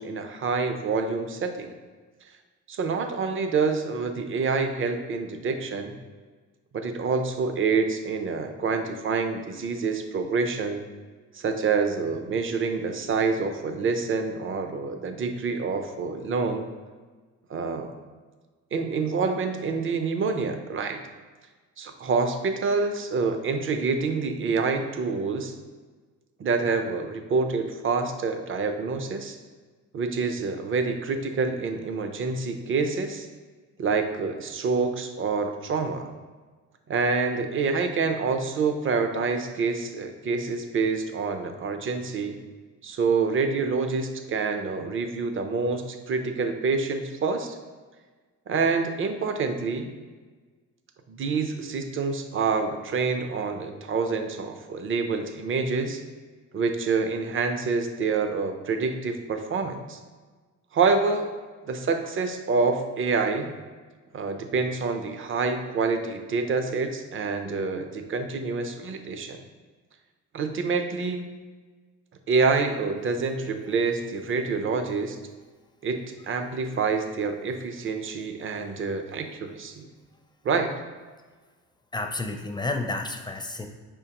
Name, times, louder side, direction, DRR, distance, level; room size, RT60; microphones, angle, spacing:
voice 1, 0.0-1.7 2.7-6.0 6.7-10.8 11.3-16.7 17.5-17.9 18.7-21.0 21.8-25.5 26.4-29.4 29.9-33.3 33.8-36.1 36.9-42.4 42.8-47.6 48.5-49.9 51.1-56.0 56.5-60.0 60.7-61.3 61.6-63.5 64.1-69.4 70.3-71.3 72.3-75.2 75.8-79.8 80.4-80.7, right 4 dB, 45° right, 7 dB, 0.6 m, -27 dB
voice 2, 81.9-83.7, left 2 dB, 15° left, 4 dB, 0.4 m, -30 dB
5.0 x 3.6 x 2.9 m, 1.4 s
cardioid pair, 90°, 30 cm